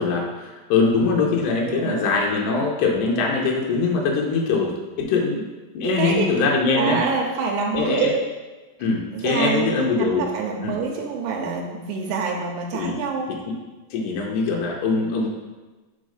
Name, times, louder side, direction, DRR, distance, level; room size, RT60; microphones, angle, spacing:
voice 1, 0.0-5.5 5.7-7.0 7.7-8.1 8.8-10.2 10.6-10.7 12.7-12.9 13.3-13.5 13.9-15.3, left 4 dB, 80° left, -1 dB, 2.4 m, -22 dB
voice 2, 1.7-2.0 5.8-6.3 6.7-8.2 9.1-13.3 15.1-15.2, right 5 dB, 85° right, 0 dB, 2.4 m, -26 dB
5.3 x 4.0 x 5.0 m, 1.2 s
omnidirectional pair, 4.0 m